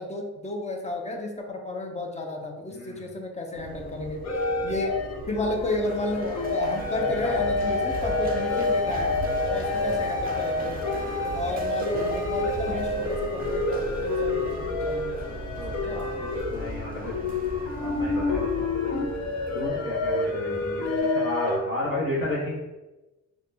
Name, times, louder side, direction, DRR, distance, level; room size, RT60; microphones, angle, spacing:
voice 1, 0.0-4.2 4.6-5.0 5.3-9.1 9.5-10.8 11.3-15.2 15.5-16.1, left 2 dB, 25° left, 2 dB, 0.5 m, -32 dB
voice 2, 2.7-3.1 7.0-7.6 9.7-10.0 15.3-17.3 17.7-18.9 19.5-20.8 21.1-22.6, left 2 dB, 45° left, -6 dB, 1.3 m, -33 dB
Run, 3.6-19.7, right 3 dB, 30° right, 0.4 m, -40 dB
sound 1, 4.2-21.6, left 3 dB, 60° left, 0.7 m, -28 dB
sound 2, 6.2-21.0, equal, 5° left, 1.1 m, -42 dB
3.9 x 2.3 x 2.7 m, 1.1 s
cardioid pair, 90°, 30 cm